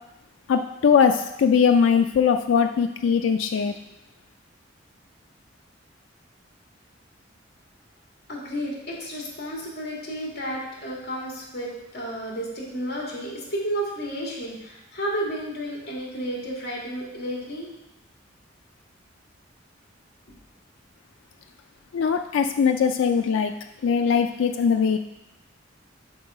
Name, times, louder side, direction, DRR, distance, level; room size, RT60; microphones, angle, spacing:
voice 1, 0.5-3.7 21.9-23.5 23.8-25.0, left 6 dB, 75° left, 6 dB, 0.3 m, -20 dB
voice 2, 8.3-17.7, right 1 dB, 55° left, -3 dB, 2.1 m, -32 dB
5.4 x 5.3 x 4.9 m, 0.91 s
head